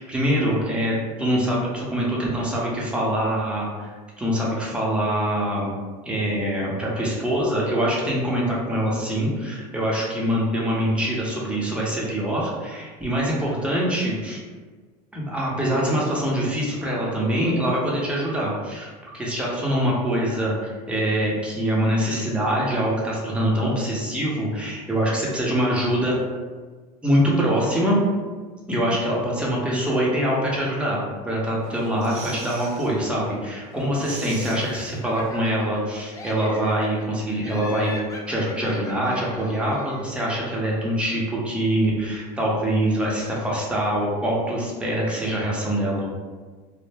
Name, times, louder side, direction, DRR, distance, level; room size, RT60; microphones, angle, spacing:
voice 1, 0.0-5.7 6.0-14.4 15.1-18.9 19.1-26.2 27.0-28.0 28.7-37.9 38.3-46.1, equal, 5° right, -5 dB, 0.7 m, -24 dB
sound 1, 31.6-32.9 33.3-33.4 33.7-35.5 35.7-35.8, right 4 dB, 65° right, 0.7 m, -41 dB
Laughter, 34.7-35.8 36.1-37.1 37.4-40.2, left 2 dB, 15° left, 0.3 m, -41 dB
2.1 x 2.0 x 3.3 m, 1.4 s
supercardioid pair, 105°, 20 cm